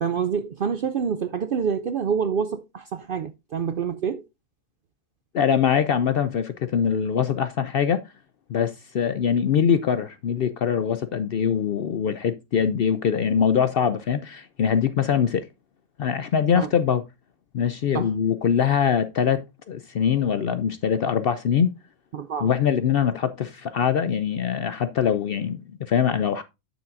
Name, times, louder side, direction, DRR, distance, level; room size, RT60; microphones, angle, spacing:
voice 1, 0.0-4.2 16.5-16.7 17.9-18.1 22.1-22.5, right 7 dB, 70° right, 0.5 m, -27 dB
voice 2, 5.3-8.0 8.5-15.5 16.0-17.0 17.5-21.8 22.4-26.4, left 7 dB, 65° left, 0.6 m, -23 dB
8.9 x 7.2 x 2.5 m
omnidirectional pair, 1.4 m